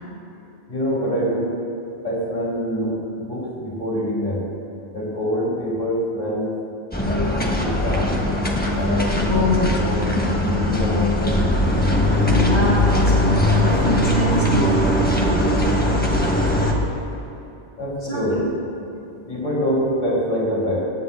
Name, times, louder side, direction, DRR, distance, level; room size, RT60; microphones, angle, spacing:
voice 1, 0.7-1.5 2.0-4.5 4.9-6.5 7.0-8.2 8.7-11.5 17.8-18.4 19.2-20.8, equal, 45° left, -7 dB, 3.1 m, -25 dB
sound 1, 6.9-16.7, left 1 dB, 10° left, 1.0 m, -20 dB
voice 2, 9.3-9.7 12.2-15.6 18.0-18.4, left 1 dB, 80° left, -8 dB, 3.1 m, -24 dB
20.5 x 9.4 x 2.2 m, 2.9 s
omnidirectional pair, 1.1 m